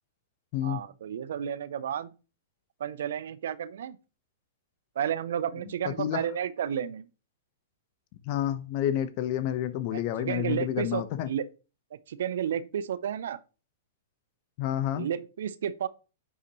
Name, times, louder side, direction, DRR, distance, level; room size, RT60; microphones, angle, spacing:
voice 1, 0.6-2.1 2.8-4.0 5.0-7.1 9.9-11.5 12.1-13.4 14.9-15.9, right 9 dB, 70° right, 0.5 m, -32 dB
voice 2, 5.8-6.2 8.2-11.3 14.6-15.1, left 11 dB, 50° left, 0.9 m, -29 dB
9.3 x 5.8 x 3.0 m
hypercardioid pair, 115°, 0 cm